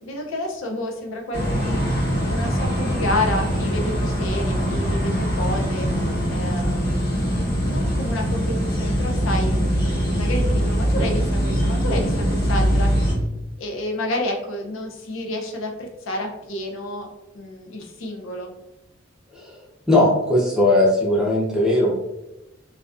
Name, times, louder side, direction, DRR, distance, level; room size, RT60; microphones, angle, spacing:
voice 1, 0.0-1.8 2.3-5.9 6.3-13.1 13.6-17.1 17.3-18.5, left 1 dB, 80° left, 2 dB, 0.5 m, -30 dB
sound 1, 1.3-13.1, equal, 50° left, 1.0 m, -22 dB
voice 2, 19.9-21.9, left 1 dB, 5° right, -6 dB, 0.5 m, -18 dB
2.3 x 2.2 x 2.4 m, 0.94 s
head